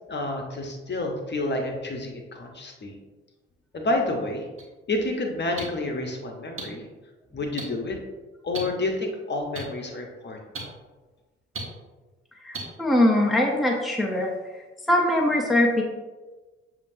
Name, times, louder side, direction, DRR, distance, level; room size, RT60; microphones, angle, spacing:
voice 1, 0.1-2.9 3.7-4.5 4.9-6.9 7.3-8.0 8.4-10.4, left 2 dB, 35° left, 2 dB, 1.0 m, -29 dB
sound 1, 4.6-4.7 5.6-5.7 6.6-6.7 7.6-7.7 8.5-8.6 9.5-9.6 10.5-10.6 11.5-11.6 12.5-12.6, right 4 dB, 45° right, 1.3 m, -32 dB
voice 2, 12.4-14.3 14.9-15.8, left 1 dB, ahead, 0 dB, 0.8 m, -22 dB
6.9 x 2.9 x 2.7 m, 1.2 s
hypercardioid pair, 45°, 31 cm